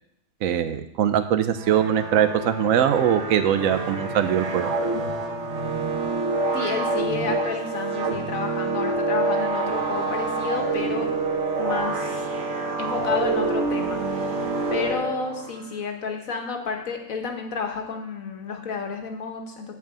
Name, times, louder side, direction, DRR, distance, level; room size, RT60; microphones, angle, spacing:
voice 1, 0.4-4.7, right 9 dB, 90° right, 10 dB, 1.1 m, -22 dB
Weird synth chord, 1.5-15.7, right 3 dB, 60° right, 1.4 m, -27 dB
voice 2, 6.5-11.1 11.6-12.2 12.8-14.4 14.7-19.7, left 5 dB, 85° left, 4 dB, 1.7 m, -31 dB
8.3 x 4.7 x 7.4 m, 0.80 s
omnidirectional pair, 1.4 m